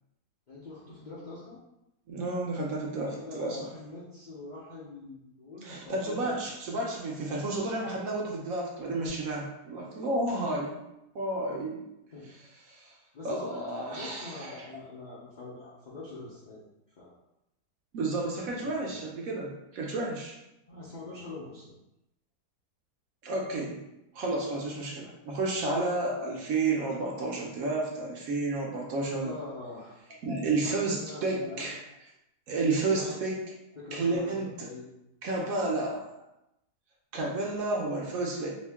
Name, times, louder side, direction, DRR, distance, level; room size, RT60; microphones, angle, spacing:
voice 1, 0.5-1.6 3.0-6.3 12.1-12.3 13.1-16.6 17.0-17.1 18.5-18.6 20.7-21.7 29.2-29.9 30.6-31.7 32.7-33.2 33.8-34.9, left 3 dB, 55° left, -8 dB, 0.5 m, -44 dB
voice 2, 2.1-3.7 5.6-10.8 11.1-11.8 12.7-12.9 13.2-14.7 17.9-20.4 23.2-23.8 24.1-29.3 30.2-31.8 32.5-33.4 33.9-34.7 35.2-36.1 37.1-38.5, right 2 dB, 65° right, -2 dB, 1.0 m, -31 dB
2.9 x 2.7 x 3.4 m, 0.88 s
omnidirectional pair, 1.7 m